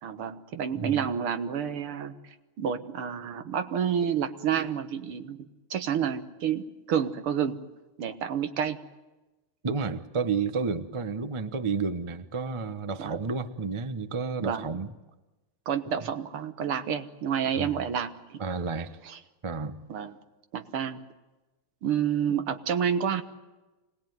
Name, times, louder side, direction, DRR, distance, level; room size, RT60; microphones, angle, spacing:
voice 1, 0.0-2.1 2.6-7.6 8.0-8.8 13.0-13.2 14.4-14.8 15.7-18.4 19.1-19.2 19.9-20.1 20.5-21.0 21.8-23.2, right 8 dB, 85° right, 9 dB, 2.2 m, -29 dB
voice 2, 9.6-14.9 17.6-17.7 18.4-19.0 19.4-19.8, right 4 dB, 50° right, 11 dB, 0.3 m, -31 dB
25.5 x 19.5 x 9.3 m, 1.1 s
omnidirectional pair, 2.3 m